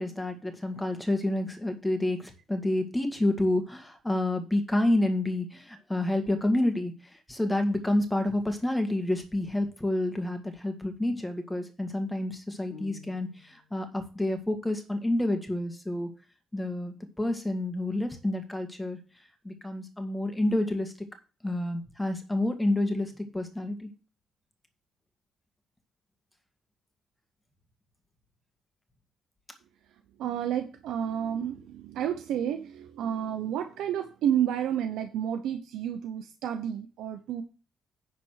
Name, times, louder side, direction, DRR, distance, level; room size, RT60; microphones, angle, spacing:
voice 1, 0.0-16.1 16.5-19.0 19.4-20.9 21.4-23.9, left 1 dB, 10° left, 6 dB, 1.9 m, -29 dB
sound 1, 12.7-13.7, left 8 dB, 55° left, 1.8 m, -49 dB
voice 2, 30.2-37.4, right 9 dB, 85° right, 6 dB, 0.8 m, -30 dB
10.5 x 4.2 x 6.4 m, 0.35 s
cardioid pair, 90°, 0 cm